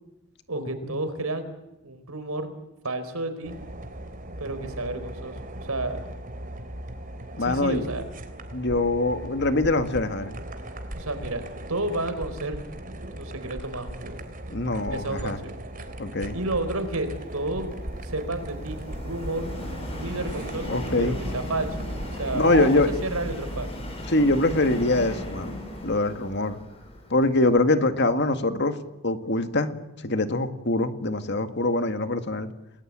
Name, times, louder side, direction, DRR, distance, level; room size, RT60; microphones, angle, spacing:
voice 1, 0.5-1.5 1.8-2.5 2.8-3.6 4.4-5.4 5.6-6.0 7.4-8.0 11.0-11.4 11.7-12.7 13.2-14.1 14.9-15.5 16.3-17.7 18.0-19.5 19.9-21.7 22.2-23.7, right 2 dB, 80° right, 10 dB, 4.3 m, -31 dB
sound 1, 3.4-22.8, right 1 dB, 40° right, 3.2 m, -38 dB
voice 2, 7.4-7.8 8.5-10.3 14.5-15.4 16.0-16.3 20.7-21.2 22.3-22.9 24.1-25.5 25.8-26.6 27.1-28.8 29.0-32.5, left 2 dB, 50° left, 9 dB, 1.9 m, -24 dB
Subway metro underground, 16.3-27.6, equal, 25° left, 7.3 m, -36 dB
29.5 x 20.5 x 8.9 m, 0.99 s
head